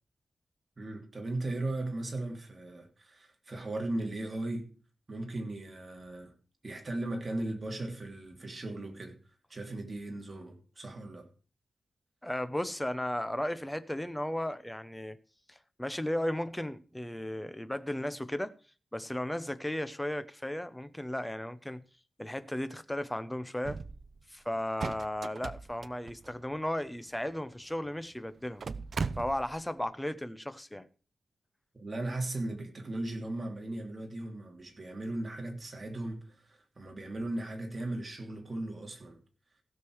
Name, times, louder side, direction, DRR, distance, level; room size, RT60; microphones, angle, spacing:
voice 1, 0.8-4.7 5.1-6.3 6.6-9.2 9.5-11.3 31.8-39.2, right 2 dB, 30° right, 2.9 m, -37 dB
voice 2, 12.2-15.2 15.5-18.5 18.9-21.8 22.2-23.8 24.3-28.6 29.2-30.9, left 1 dB, 5° left, 0.9 m, -35 dB
sound 1, 23.6-24.2 24.5-26.7 27.6-27.7 27.9-28.0 28.4-29.7, right 4 dB, 50° right, 0.6 m, -38 dB
16.0 x 6.8 x 4.8 m
wide cardioid pair, 145°, 0 cm